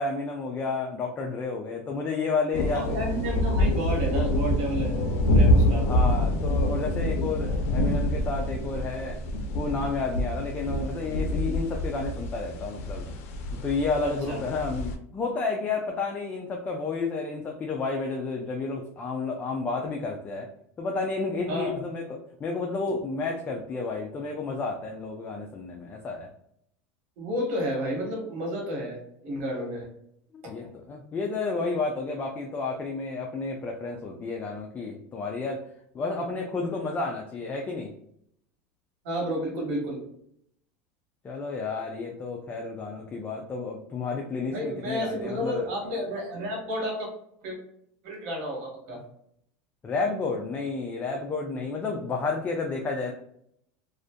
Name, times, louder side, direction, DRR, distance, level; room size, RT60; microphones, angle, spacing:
voice 1, 0.0-3.0 5.9-9.2 9.5-13.1 13.6-20.5 20.8-22.0 22.4-26.3 30.3-35.6 35.9-37.9 41.2-45.7 49.8-53.1, left 3 dB, 20° left, 1 dB, 0.4 m, -31 dB
sound 1, 2.5-15.0, left 1 dB, 85° left, 0.4 m, -26 dB
voice 2, 2.7-6.0 14.0-14.4 21.5-21.8 27.2-29.9 30.4-30.7 39.0-40.0 44.5-47.1 47.4-47.6 48.0-49.0, equal, 70° right, -1 dB, 1.3 m, -31 dB
2.5 x 2.4 x 2.2 m, 0.71 s
supercardioid pair, 125°, 7 cm